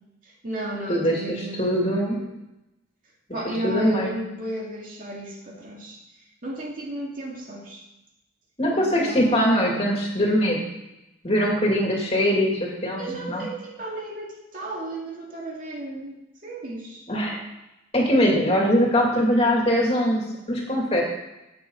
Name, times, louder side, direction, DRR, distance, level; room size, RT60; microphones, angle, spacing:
voice 1, 0.2-2.3 3.3-6.0 6.4-7.8 8.7-9.6 13.0-17.0 19.0-19.1, right 1 dB, 45° right, -2 dB, 2.4 m, -34 dB
voice 2, 0.9-2.2 3.6-4.1 8.6-10.7 11.2-13.4 17.1-17.4 17.9-21.0, equal, 30° left, -2 dB, 2.8 m, -22 dB
13.0 x 8.9 x 4.1 m, 0.94 s
head